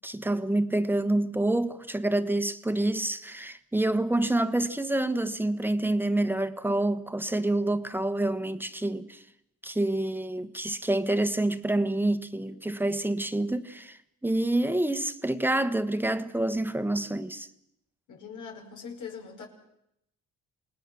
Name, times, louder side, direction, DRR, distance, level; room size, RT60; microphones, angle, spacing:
voice 1, 0.0-9.2 9.6-17.5, right 1 dB, 5° right, 1.3 m, -27 dB
voice 2, 18.1-19.5, left 6 dB, 80° left, 5.5 m, -41 dB
28.0 x 19.5 x 6.2 m
cardioid pair, 90°, 30 cm